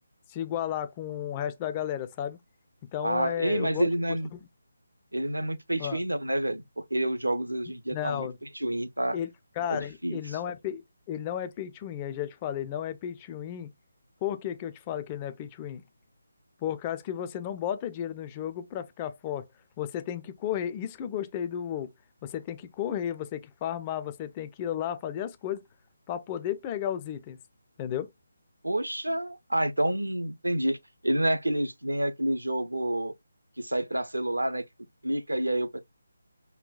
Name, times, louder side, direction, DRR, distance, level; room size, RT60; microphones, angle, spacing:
voice 1, 0.3-2.4 2.9-3.9 4.3-4.4 5.8-6.0 7.9-8.4 9.1-9.3 9.6-13.7 14.2-15.8 16.6-19.5 19.8-21.9 22.2-25.6 26.1-27.4 27.8-28.1, left 10 dB, 20° left, 0.3 m, -33 dB
voice 2, 3.0-4.3 5.1-6.6 6.9-8.3 8.5-9.2 9.7-10.4 28.6-30.8 31.0-33.1 33.6-34.6 35.0-35.8, right 1 dB, 80° right, 0.6 m, -28 dB
5.4 x 2.2 x 2.3 m
figure-of-eight pair, 150°, 0 cm